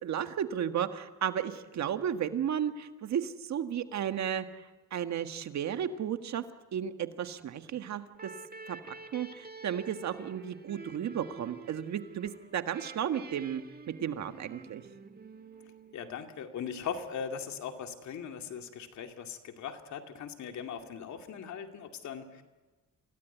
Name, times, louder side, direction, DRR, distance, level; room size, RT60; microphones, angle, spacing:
voice 1, 0.0-4.5 4.9-6.4 6.7-8.3 8.7-14.8, right 9 dB, 65° right, 8 dB, 1.6 m, -34 dB
sound 1, 8.1-16.6, right 4 dB, 30° right, 1.7 m, -49 dB
voice 2, 15.9-22.4, left 7 dB, 70° left, 5 dB, 2.4 m, -39 dB
26.0 x 17.5 x 9.3 m, 1.2 s
cardioid pair, 90°, 30 cm